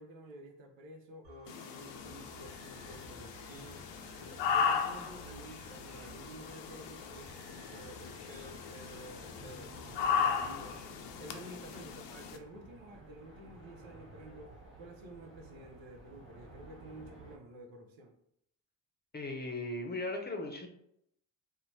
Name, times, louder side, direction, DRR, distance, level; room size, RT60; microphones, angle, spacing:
voice 1, 0.0-3.9 4.2-10.8 11.2-18.1, right 1 dB, 85° right, 3 dB, 0.7 m, -51 dB
sound 1, 1.2-10.8, equal, 65° right, 1.1 m, -57 dB
sound 2, 1.5-12.4, left 6 dB, 75° left, 0.5 m, -37 dB
sound 3, 1.9-17.4, right 2 dB, 25° right, 1.3 m, -55 dB
voice 2, 19.1-20.7, left 2 dB, 25° left, 3 dB, 0.6 m, -37 dB
2.7 x 2.1 x 3.1 m, 0.74 s
cardioid pair, 70°, 44 cm